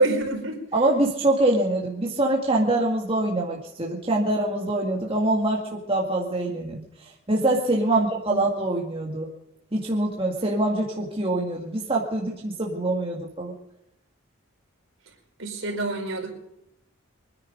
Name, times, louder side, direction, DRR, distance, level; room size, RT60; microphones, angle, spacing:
voice 1, 0.0-0.6 7.9-8.0 8.3-8.4 15.4-16.3, right 2 dB, 65° right, 2 dB, 4.8 m, -25 dB
voice 2, 0.7-9.3 9.7-13.5, right 2 dB, 25° right, -1 dB, 2.1 m, -24 dB
25.0 x 10.0 x 5.3 m, 0.84 s
head